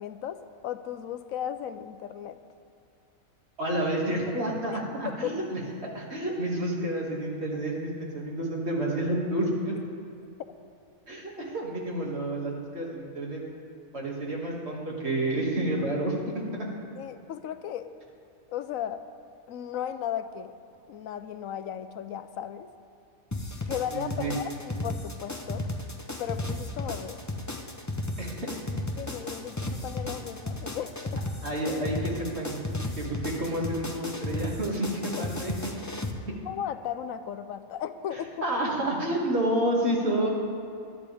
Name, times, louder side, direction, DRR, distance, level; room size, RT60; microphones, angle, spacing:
voice 1, 0.0-2.4 4.7-4.8 5.2-5.4 17.0-17.9 18.5-19.0 19.5-20.5 20.9-22.7 23.6-25.6 26.2-27.2 29.0-31.2 35.2-35.3 36.4-38.5, left 10 dB, 70° left, 10 dB, 1.1 m, -35 dB
voice 2, 3.6-5.6 5.9-9.8 11.1-13.4 13.9-16.7 23.9-24.3 28.2-28.3 31.4-32.5 33.0-35.5 38.4-40.3, right 1 dB, 50° right, -3 dB, 2.5 m, -29 dB
sound 1, 23.3-36.1, left 2 dB, 15° left, 0.6 m, -34 dB
21.0 x 10.5 x 3.5 m, 2.5 s
omnidirectional pair, 1.5 m